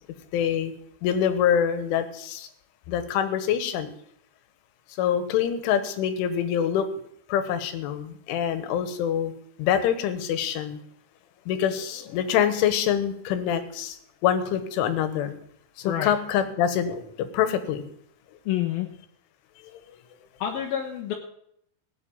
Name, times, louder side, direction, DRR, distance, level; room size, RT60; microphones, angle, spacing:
voice 1, 0.3-0.7 1.0-2.5 2.9-3.9 5.0-6.9 7.3-9.3 9.6-10.8 11.5-15.4 15.8-17.9, left 9 dB, 90° left, 11 dB, 3.8 m, -25 dB
voice 2, 18.5-18.9 20.4-21.1, left 11 dB, 65° left, 0 dB, 2.5 m, -28 dB
17.5 x 8.3 x 8.8 m, 0.71 s
omnidirectional pair, 5.4 m